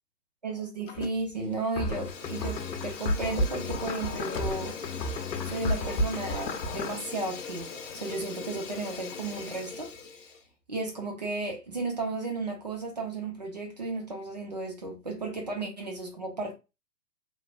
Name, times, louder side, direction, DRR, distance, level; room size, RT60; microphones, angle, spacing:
voice 1, 0.4-4.8 5.4-9.9 10.7-16.5, right 3 dB, 30° right, 0.4 m, -34 dB
Fire, 0.9-1.4 1.7-10.4, left 5 dB, 50° left, 0.7 m, -41 dB
sound 1, 1.8-7.0, left 1 dB, 85° left, 0.7 m, -32 dB
3.1 x 2.1 x 2.4 m
hypercardioid pair, 140°, 50 cm